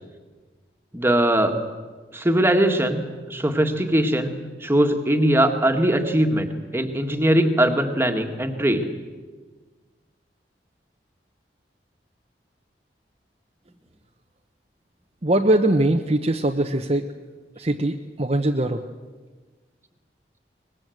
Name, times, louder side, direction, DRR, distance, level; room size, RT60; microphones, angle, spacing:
voice 1, 0.9-1.6 2.1-3.0 3.3-8.8, right 1 dB, 15° right, 5 dB, 1.7 m, -21 dB
voice 2, 15.2-17.1 17.6-18.8, right 1 dB, 35° right, 4 dB, 0.9 m, -21 dB
23.5 x 20.0 x 7.9 m, 1.4 s
head